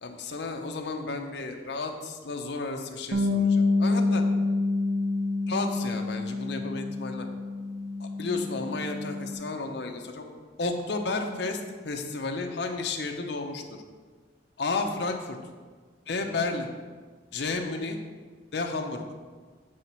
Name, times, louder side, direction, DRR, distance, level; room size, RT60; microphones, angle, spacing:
voice 1, 0.0-4.2 5.5-7.3 8.0-10.2 10.6-13.6 14.6-15.4 16.1-16.7 17.3-18.0 18.5-19.0, left 3 dB, 65° left, 4 dB, 0.7 m, -32 dB
Bass guitar, 3.1-9.4, left 3 dB, 80° right, 0.7 m, -27 dB
7.7 x 3.9 x 4.4 m, 1.5 s
head